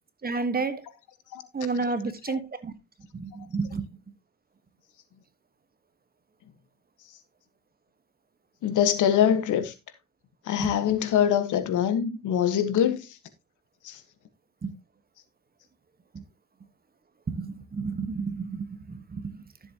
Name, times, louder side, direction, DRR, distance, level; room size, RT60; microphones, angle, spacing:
voice 1, 0.2-0.8 1.5-2.7 3.1-3.9 10.6-10.7 14.6-14.7 16.1-16.2 17.3-19.4, right 4 dB, 30° right, 1.5 m, -31 dB
voice 2, 8.6-9.7 10.4-13.2 13.8-14.0, left 9 dB, 80° left, 1.6 m, -24 dB
13.5 x 7.4 x 3.0 m
cardioid pair, 90°, 30 cm